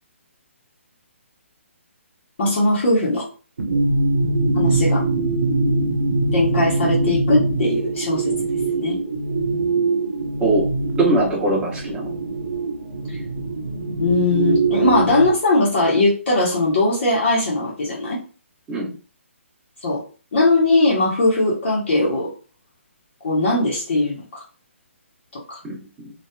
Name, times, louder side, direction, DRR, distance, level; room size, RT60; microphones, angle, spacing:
voice 1, 2.4-3.2 4.5-5.0 6.3-8.3 8.8-9.0 12.1-12.2 13.1-13.2 14.0-18.2 19.8-20.0 20.3-22.3 23.2-24.4 25.3-25.6, left 2 dB, 55° left, -5 dB, 1.0 m, -20 dB
sound 1, 3.6-15.3, right 3 dB, 75° right, 0.7 m, -22 dB
voice 2, 11.0-12.1 18.7-18.9 25.6-26.1, right 2 dB, 10° right, -5 dB, 1.0 m, -21 dB
2.8 x 2.4 x 2.2 m, 0.37 s
hypercardioid pair, 155°, 7 cm